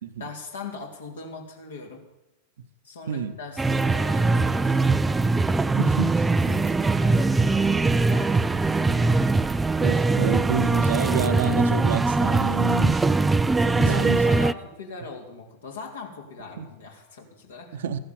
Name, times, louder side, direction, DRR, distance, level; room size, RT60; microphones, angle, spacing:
voice 1, 0.2-2.0 2.8-4.9 6.3-9.1 13.6-17.8, left 4 dB, 65° left, 2 dB, 3.3 m, -40 dB
sound 1, 3.6-14.5, right 3 dB, 10° right, 0.5 m, -21 dB
voice 2, 5.8-6.1 9.8-13.0 13.7-14.2 16.6-16.7 17.7-18.0, right 7 dB, 60° right, 9 dB, 1.0 m, -28 dB
15.5 x 11.5 x 7.1 m, 0.94 s
figure-of-eight pair, 90°, 0 cm